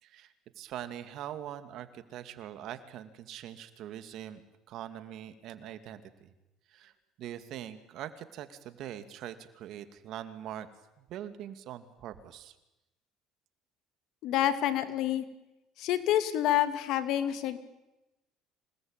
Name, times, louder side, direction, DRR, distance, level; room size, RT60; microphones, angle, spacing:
voice 1, 0.0-4.4 4.7-6.3 6.7-6.9 7.2-10.7 11.0-12.5, right 11 dB, 65° right, 10 dB, 2.4 m, -43 dB
voice 2, 14.2-15.2 15.8-17.6, left 12 dB, 70° left, 10 dB, 2.6 m, -28 dB
26.5 x 19.0 x 9.1 m, 0.96 s
supercardioid pair, 90°, 0 cm